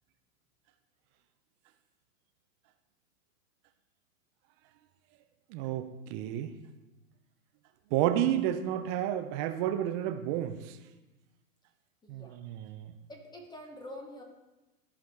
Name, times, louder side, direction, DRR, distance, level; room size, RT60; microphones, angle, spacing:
voice 1, 5.5-6.5 7.9-10.6 12.1-12.7, right 11 dB, 35° right, 9 dB, 0.6 m, -30 dB
voice 2, 12.0-12.4 13.1-14.2, left 1 dB, 10° left, 2 dB, 0.9 m, -46 dB
14.0 x 5.0 x 3.5 m, 1.1 s
hypercardioid pair, 115°, 41 cm